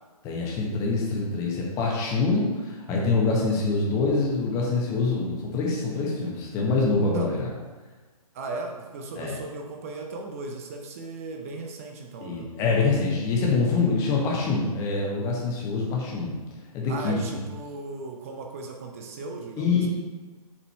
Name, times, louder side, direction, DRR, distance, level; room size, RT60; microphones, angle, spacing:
voice 1, 0.2-7.5 9.2-9.4 12.2-16.3 16.7-17.4 19.6-19.9, left 3 dB, 15° left, -2 dB, 1.1 m, -25 dB
voice 2, 8.3-12.5 16.9-19.9, right 3 dB, 20° right, 2 dB, 0.6 m, -37 dB
7.3 x 4.2 x 4.3 m, 1.3 s
figure-of-eight pair, 135°, 20 cm